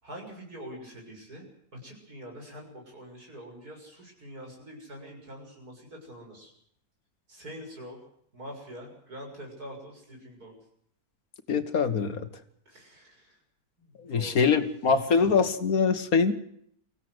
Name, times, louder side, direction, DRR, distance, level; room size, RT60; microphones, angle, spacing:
voice 1, 0.0-1.5 1.8-6.5 7.3-8.0 8.3-10.5 12.7-13.4 13.8-14.5, equal, 80° right, 1 dB, 7.3 m, -45 dB
voice 2, 11.5-12.3 14.0-16.3, left 5 dB, 65° left, 9 dB, 2.0 m, -24 dB
24.5 x 16.0 x 8.0 m, 0.68 s
omnidirectional pair, 1.6 m